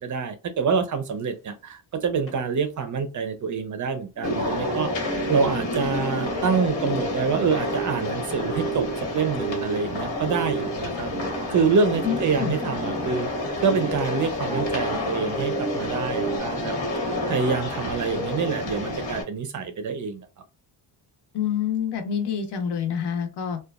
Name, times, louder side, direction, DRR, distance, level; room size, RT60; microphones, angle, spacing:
voice 1, 0.0-4.9 5.3-11.1 11.5-13.3 13.6-16.7 17.3-20.3, right 5 dB, 45° right, 0.4 m, -26 dB
sound 1, 1.3-1.4 2.2-2.3 4.2-16.4, right 4 dB, 30° left, 0.7 m, -34 dB
sound 2, 4.2-19.2, left 2 dB, 85° left, 1.1 m, -29 dB
voice 2, 12.0-12.5 21.3-23.6, left 8 dB, 65° left, 0.7 m, -27 dB
2.8 x 2.2 x 2.2 m
wide cardioid pair, 170°, 44 cm